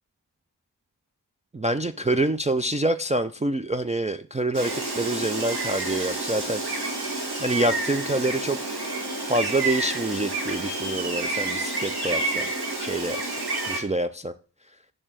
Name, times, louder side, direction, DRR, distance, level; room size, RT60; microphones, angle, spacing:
voice 1, 1.5-6.6 7.4-8.6 9.3-12.5 12.8-13.4 13.7-14.3, right 1 dB, 20° right, 0.3 m, -26 dB
Gull seagull, 4.5-13.8, right 2 dB, 65° right, 1.6 m, -29 dB
6.5 x 3.3 x 6.0 m
wide cardioid pair, 50°, 42 cm